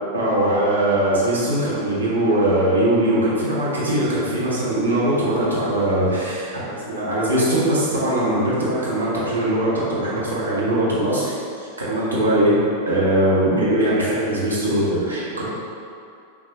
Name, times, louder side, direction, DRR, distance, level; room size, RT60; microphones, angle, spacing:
voice 1, 0.1-11.3 11.8-12.6 12.8-15.5, right 1 dB, 80° right, -8 dB, 1.1 m, -21 dB
6.0 x 2.4 x 2.9 m, 2.5 s
figure-of-eight pair, 90°, 0 cm